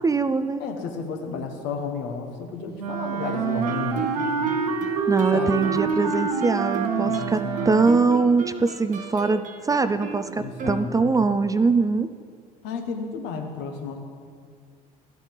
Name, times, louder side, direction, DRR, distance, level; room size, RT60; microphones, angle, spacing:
voice 1, 0.0-0.6 5.1-7.4 7.7-12.1, right 4 dB, 20° right, 12 dB, 0.4 m, -22 dB
voice 2, 0.6-4.8 5.1-5.8 7.0-8.0 10.3-11.2 12.6-14.0, left 5 dB, 70° left, 4 dB, 1.2 m, -33 dB
Wind instrument woodwind instrument, 2.8-8.3, right 6 dB, 90° right, 0.6 m, -27 dB
Guitar, 3.7-11.4, right 5 dB, 45° right, 0.8 m, -34 dB
13.0 x 8.3 x 3.4 m, 2.1 s
hypercardioid pair, 60°, 19 cm